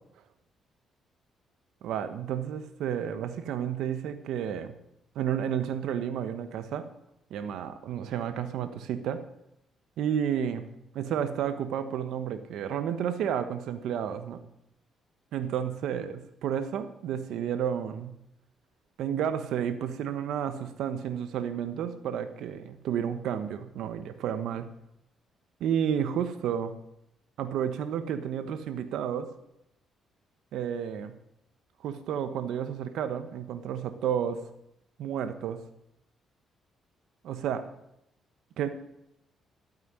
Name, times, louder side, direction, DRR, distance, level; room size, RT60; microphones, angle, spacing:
voice 1, 1.8-4.7 5.1-6.9 7.3-9.2 10.0-10.7 10.9-14.4 15.3-18.1 19.0-24.7 25.6-26.7 27.4-29.3 30.5-31.1 31.8-34.4 35.0-35.6 37.2-37.6 38.6-38.7, right 9 dB, 80° right, 10 dB, 1.1 m, -31 dB
12.5 x 9.3 x 9.7 m, 0.82 s
cardioid pair, 90°, 0 cm